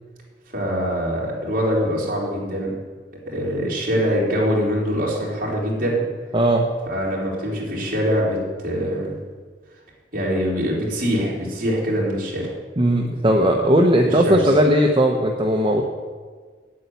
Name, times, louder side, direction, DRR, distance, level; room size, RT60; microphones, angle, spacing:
voice 1, 0.5-2.7 3.3-6.0 6.9-9.1 10.1-12.5 14.0-14.5, equal, 50° right, -4 dB, 3.9 m, -23 dB
voice 2, 6.3-6.7 12.8-15.8, right 1 dB, 30° right, 1 dB, 0.8 m, -17 dB
9.5 x 8.5 x 8.2 m, 1.5 s
head